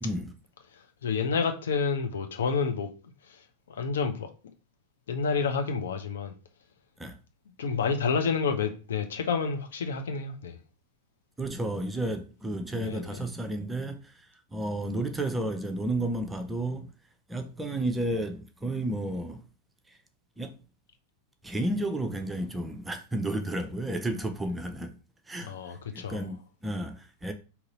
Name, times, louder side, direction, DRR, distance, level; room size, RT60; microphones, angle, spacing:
voice 1, 0.0-0.3 7.0-7.2 11.4-16.9 17.3-19.4 19.9-20.0 20.4-20.5 21.4-25.0 25.3-27.3, right 1 dB, 10° right, 0.6 m, -32 dB
voice 2, 1.0-2.9 3.3-3.4 3.7-4.3 5.1-6.3 7.6-10.6 12.8-13.2 25.5-26.2, left 5 dB, 65° left, 0.7 m, -29 dB
3.8 x 2.9 x 4.1 m
figure-of-eight pair, 90°, 0 cm